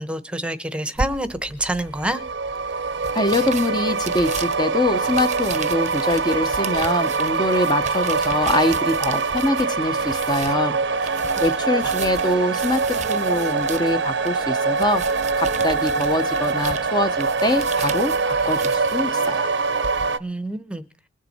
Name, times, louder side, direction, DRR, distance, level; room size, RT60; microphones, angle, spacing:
voice 1, 0.0-2.2 20.2-20.8, right 1 dB, 5° right, 12 dB, 0.9 m, -27 dB
sound 1, 1.0-20.1, right 5 dB, 40° right, 0.7 m, -36 dB
sound 2, 2.0-20.2, right 4 dB, 70° right, 0.8 m, -24 dB
voice 2, 3.1-10.8 11.0-12.8 13.1-15.0 15.4-19.5, left 1 dB, 20° left, 8 dB, 0.8 m, -24 dB
21.0 x 7.5 x 4.2 m, 0.39 s
head